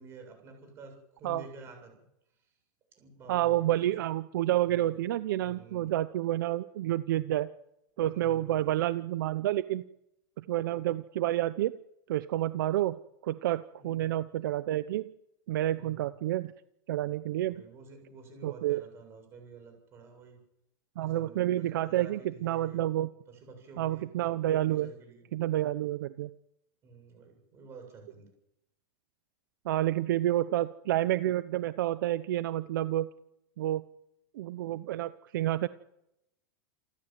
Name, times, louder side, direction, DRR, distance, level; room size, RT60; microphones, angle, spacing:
voice 1, 0.0-1.9 2.9-3.9 4.7-4.9 5.4-5.9 8.0-8.7 13.8-14.0 15.7-16.1 17.5-20.4 21.0-22.8 23.3-25.2 26.8-28.3, right 4 dB, 20° right, 4 dB, 7.5 m, -50 dB
voice 2, 3.3-7.5 8.0-9.8 10.4-11.7 12.1-13.0 13.2-15.1 15.5-16.5 16.9-17.6 18.4-18.8 21.0-23.1 23.8-24.9 25.3-26.3 29.6-33.1 33.6-33.8 34.3-35.7, right 14 dB, 65° right, 14 dB, 0.8 m, -29 dB
28.5 x 13.0 x 9.2 m, 0.82 s
supercardioid pair, 175°, 12 cm